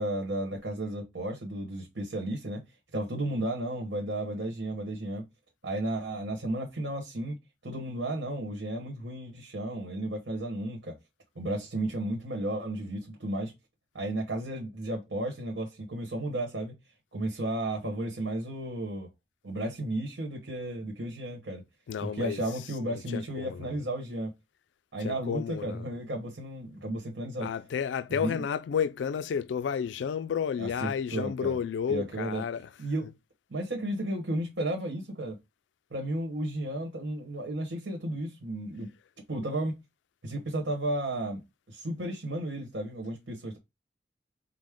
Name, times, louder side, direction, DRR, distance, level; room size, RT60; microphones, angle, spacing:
voice 1, 0.0-2.6 2.9-5.2 5.6-7.4 7.6-10.9 11.3-13.5 13.9-16.7 17.1-19.1 19.4-21.6 22.0-24.3 24.9-27.5 28.1-28.4 30.6-31.6 31.9-32.4 32.8-33.1 33.5-35.4 35.9-38.9 39.3-39.7 40.2-41.4 41.7-43.6, right 1 dB, 85° right, 1.3 m, -33 dB
voice 2, 21.9-22.4 22.8-23.8 25.0-25.8 27.4-32.7, left 7 dB, 80° left, 0.3 m, -31 dB
5.1 x 2.1 x 3.7 m
head